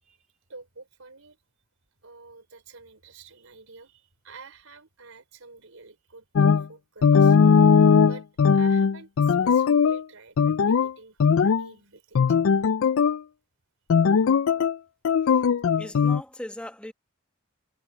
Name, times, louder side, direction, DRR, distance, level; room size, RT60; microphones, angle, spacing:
voice 1, 0.0-1.4 2.0-7.4 8.0-8.3 8.5-12.4, right 3 dB, 85° right, 4.4 m, -48 dB
sound 1, 6.4-6.6 7.0-10.0 10.4-10.9 11.2-11.7 12.2-13.2 13.9-14.8 15.0-16.2, left 6 dB, 75° left, 0.4 m, -19 dB
voice 2, 15.8-16.9, left 1 dB, 5° left, 1.4 m, -39 dB
head